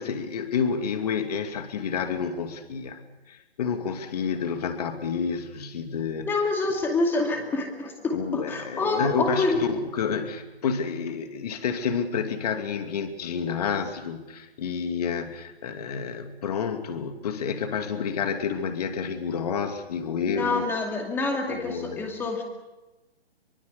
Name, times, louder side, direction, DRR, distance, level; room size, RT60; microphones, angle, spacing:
voice 1, 0.0-3.0 3.3-6.3 8.1-20.7 21.5-22.0, left 6 dB, 40° left, 7 dB, 2.6 m, -29 dB
voice 2, 6.3-9.7 20.3-22.4, left 3 dB, 5° left, 3 dB, 2.4 m, -27 dB
24.5 x 24.0 x 6.9 m, 1.1 s
hypercardioid pair, 160°, 32 cm